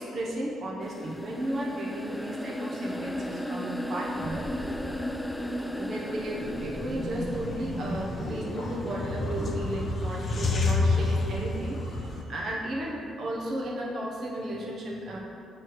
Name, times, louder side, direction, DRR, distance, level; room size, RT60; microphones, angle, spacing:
voice 1, 0.0-4.5 5.8-15.2, right 1 dB, 55° right, -3 dB, 0.9 m, -34 dB
sound 1, 0.8-8.8, left 1 dB, 5° left, 0.3 m, -36 dB
sound 2, 4.2-9.5, equal, 10° right, 1.2 m, -38 dB
sound 3, 7.1-12.2, left 3 dB, 45° left, 0.7 m, -29 dB
7.6 x 3.2 x 4.7 m, 2.7 s
cardioid pair, 90°, 0 cm